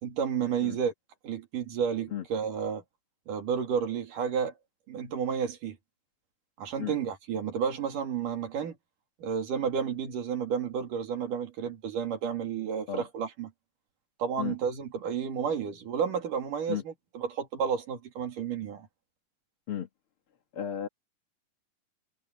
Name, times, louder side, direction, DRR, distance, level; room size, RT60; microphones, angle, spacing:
voice 1, 0.0-0.9 1.2-2.8 3.3-4.5 4.9-5.8 6.6-8.7 9.2-13.5 14.2-18.9, right 7 dB, 80° right, 4.2 m, -31 dB
voice 2, 20.5-20.9, left 10 dB, 45° left, 2.4 m, -34 dB
omnidirectional pair, 3.7 m